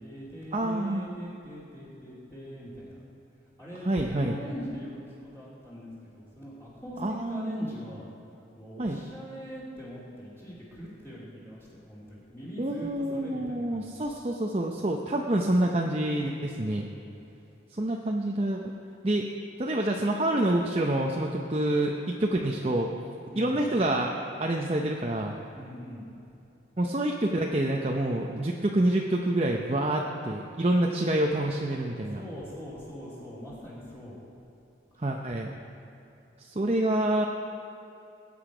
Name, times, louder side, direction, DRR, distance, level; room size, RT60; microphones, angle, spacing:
voice 1, 0.0-3.0 3.6-8.1 8.5-14.1 23.3-23.6 25.5-26.0 32.1-34.2, equal, 15° left, -9 dB, 2.8 m, -42 dB
voice 2, 0.5-1.1 3.8-4.4 7.0-7.6 8.8-9.0 12.6-16.9 17.7-18.6 19.0-19.3 19.6-21.9 22.2-22.9 23.4-25.4 26.8-32.2 35.0-35.5 36.4-37.2, right 1 dB, 35° right, 0 dB, 0.7 m, -27 dB
19.5 x 8.7 x 5.0 m, 2.8 s
head